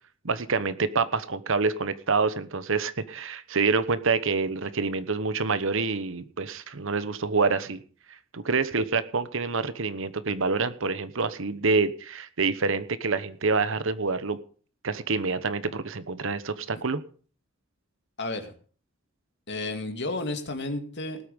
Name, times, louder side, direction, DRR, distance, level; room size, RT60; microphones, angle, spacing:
voice 1, 0.2-7.8 8.3-14.4 14.8-17.0, right 4 dB, 65° right, 13 dB, 1.1 m, -27 dB
voice 2, 18.2-18.5 19.5-21.2, left 2 dB, 55° left, 6 dB, 2.3 m, -32 dB
19.0 x 8.5 x 5.3 m, 0.42 s
head